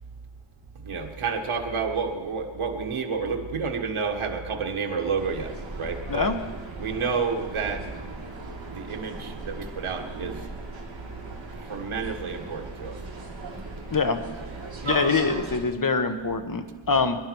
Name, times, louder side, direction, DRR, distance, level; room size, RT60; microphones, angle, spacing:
voice 1, 0.8-6.3 6.8-7.8 8.7-10.4 11.7-12.9, right 5 dB, 90° right, 4 dB, 1.6 m, -30 dB
sound 1, 5.2-15.6, right 2 dB, 65° right, 3.1 m, -38 dB
voice 2, 14.8-17.2, left 4 dB, 45° left, 8 dB, 1.3 m, -24 dB
23.0 x 11.5 x 4.6 m, 1.3 s
wide cardioid pair, 80°, 48 cm